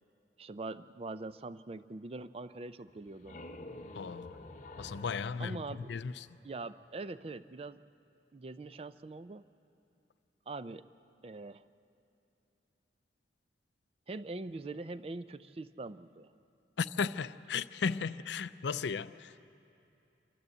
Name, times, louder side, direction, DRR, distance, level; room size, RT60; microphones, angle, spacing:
voice 1, 0.4-3.4 5.4-5.9 6.4-7.8 8.3-9.4 10.5-10.9 11.2-11.7 14.1-16.3, right 3 dB, 35° right, 0.4 m, -43 dB
sound 1, 2.9-6.5, left 2 dB, 45° left, 0.8 m, -49 dB
voice 2, 3.9-4.4 4.8-6.3 16.8-19.4, left 5 dB, 75° left, 0.5 m, -35 dB
27.0 x 12.5 x 8.0 m
head